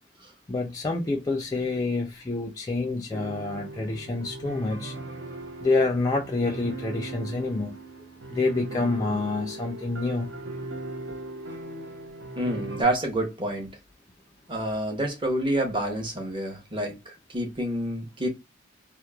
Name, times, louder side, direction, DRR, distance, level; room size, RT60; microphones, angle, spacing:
voice 1, 0.5-4.9 5.6-7.8 8.3-10.3, left 3 dB, 20° left, 0.3 m, -27 dB
sound 1, 3.1-12.8, right 2 dB, 65° right, 0.6 m, -38 dB
voice 2, 12.4-13.7 14.5-18.3, right 1 dB, 25° right, 0.8 m, -28 dB
2.8 x 2.1 x 2.2 m
head